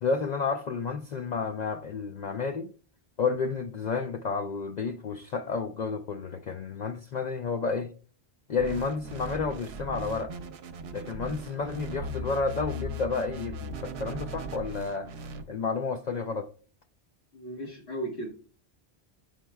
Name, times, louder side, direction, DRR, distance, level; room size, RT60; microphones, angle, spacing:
voice 1, 0.0-2.7 3.2-7.9 8.5-10.3 10.9-15.1 15.5-16.5, left 4 dB, 55° left, 0.5 m, -31 dB
sound 1, 8.6-15.4, right 1 dB, 70° right, 0.9 m, -38 dB
voice 2, 17.3-18.3, right 1 dB, 80° left, 1.6 m, -35 dB
10.5 x 4.3 x 2.2 m
omnidirectional pair, 1.1 m